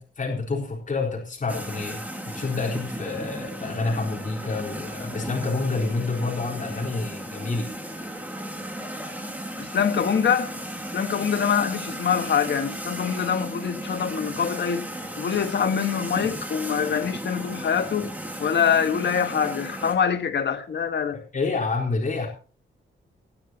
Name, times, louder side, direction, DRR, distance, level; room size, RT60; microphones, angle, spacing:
voice 1, 0.0-2.0 2.3-7.7 21.3-22.3, left 3 dB, 40° left, 4.0 m, -28 dB
sound 1, 1.5-19.9, right 1 dB, 10° right, 2.8 m, -35 dB
voice 2, 9.6-10.5 10.9-14.9 15.2-18.1 18.4-21.2, left 7 dB, 60° left, 1.7 m, -24 dB
18.5 x 12.0 x 2.9 m
wide cardioid pair, 145°, 20 cm